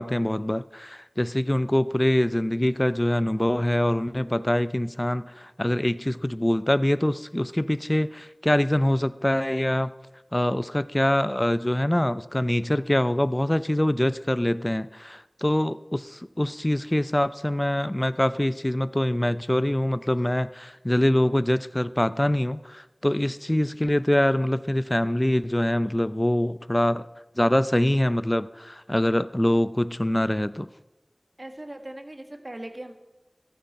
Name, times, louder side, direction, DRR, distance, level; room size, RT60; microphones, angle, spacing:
voice 1, 0.0-9.9 10.3-27.1 27.4-30.7, left 1 dB, 25° left, 15 dB, 0.5 m, -24 dB
voice 2, 4.2-4.5 31.4-32.9, right 1 dB, 50° right, 5 dB, 1.6 m, -40 dB
14.5 x 13.0 x 4.2 m, 1.0 s
wide cardioid pair, 40°, 0 cm